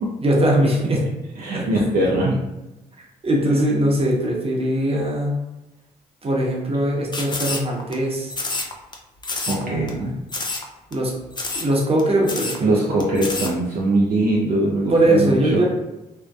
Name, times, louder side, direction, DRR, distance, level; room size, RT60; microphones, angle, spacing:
voice 1, 0.2-1.0 1.5-1.9 3.2-5.4 6.2-8.3 9.5-10.0 10.9-11.1 11.5-12.7 14.9-15.6, right 1 dB, 35° right, -2 dB, 0.8 m, -20 dB
voice 2, 1.4-2.4 9.5-10.1 12.6-15.6, right 2 dB, 55° right, -3 dB, 0.5 m, -21 dB
sound 1, 7.1-7.9 8.3-8.9 9.2-9.6 9.9-10.0 10.3-10.7 10.9-11.0 11.3-11.7 12.0-12.1 12.3-12.6 13.0-13.5, left 3 dB, 25° left, 0.5 m, -28 dB
2.6 x 2.1 x 2.3 m, 0.99 s
hypercardioid pair, 50°, 18 cm